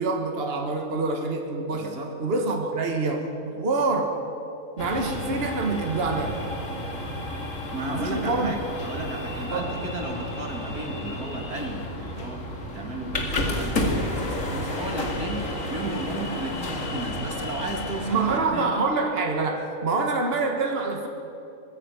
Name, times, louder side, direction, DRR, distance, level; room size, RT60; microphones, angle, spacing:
voice 1, 0.0-4.2 4.8-6.4 7.9-8.5 9.5-9.8 18.1-21.1, right 3 dB, 40° right, 3 dB, 1.9 m, -26 dB
voice 2, 1.7-2.1 7.7-12.5 12.7-18.7, right 1 dB, 80° right, 1 dB, 3.2 m, -34 dB
sound 1, 4.8-18.4, left 1 dB, 60° left, 2.7 m, -31 dB
20.5 x 15.5 x 9.1 m, 2.9 s
omnidirectional pair, 1.6 m